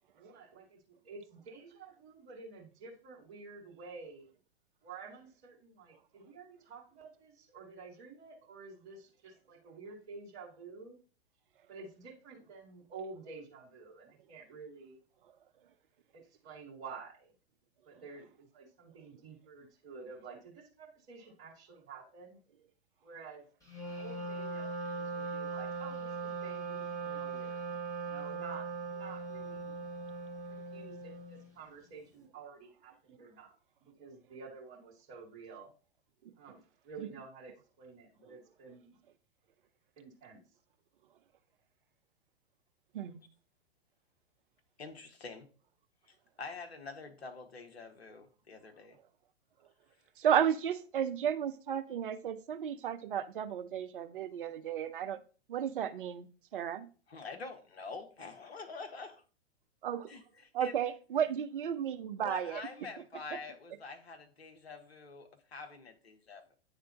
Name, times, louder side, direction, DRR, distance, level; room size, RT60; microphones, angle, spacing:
voice 1, 0.1-4.3 4.8-11.0 11.7-15.0 16.1-17.3 17.8-22.4 23.0-23.4 24.0-27.6 27.9-28.6 28.9-29.7 30.5-33.5 33.8-35.7 36.4-38.9 40.0-40.4, right 4 dB, 35° right, 1.9 m, -50 dB
Wind instrument woodwind instrument, 23.7-31.5, right 4 dB, 10° left, 2.0 m, -40 dB
voice 2, 44.8-45.5 46.1-49.0 57.1-59.2 60.1-60.7 62.2-66.6, left 3 dB, 65° left, 1.2 m, -46 dB
voice 3, 50.2-55.2 55.5-56.3 56.5-56.9 59.8-60.1 60.5-62.6, right 9 dB, 50° right, 0.7 m, -33 dB
9.6 x 3.4 x 2.9 m
figure-of-eight pair, 105°, 33 cm